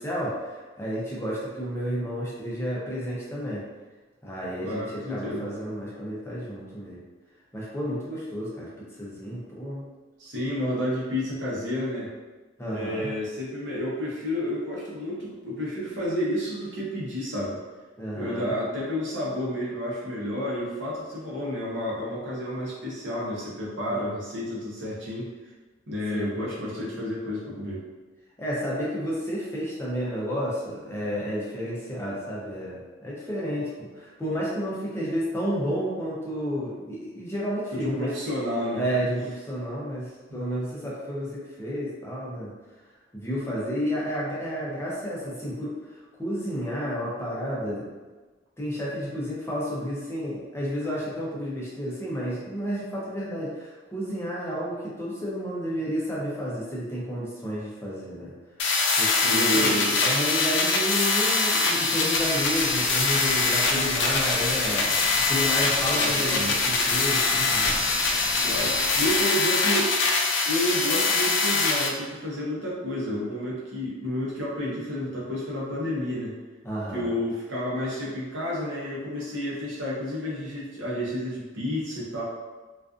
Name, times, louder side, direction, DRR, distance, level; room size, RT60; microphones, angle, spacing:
voice 1, 0.0-3.6 4.2-7.0 7.5-8.7 9.0-9.8 12.6-13.1 18.0-18.5 23.9-24.1 26.1-26.3 28.4-38.1 38.7-42.5 43.1-47.8 48.6-58.3 59.0-67.8 76.6-77.1, equal, 15° left, -6 dB, 0.5 m, -31 dB
voice 2, 4.6-5.4 10.2-12.1 12.7-17.6 18.1-25.3 25.9-27.8 37.7-38.8 40.3-40.4 59.2-59.8 65.9-66.5 68.4-70.0 70.4-76.4 76.9-82.2, left 1 dB, 75° right, -6 dB, 0.8 m, -30 dB
sound 1, 58.6-71.9, left 3 dB, 70° left, 0.4 m, -23 dB
sound 2, 62.1-69.2, equal, 40° right, 0.8 m, -37 dB
2.4 x 2.4 x 2.4 m, 1.3 s
head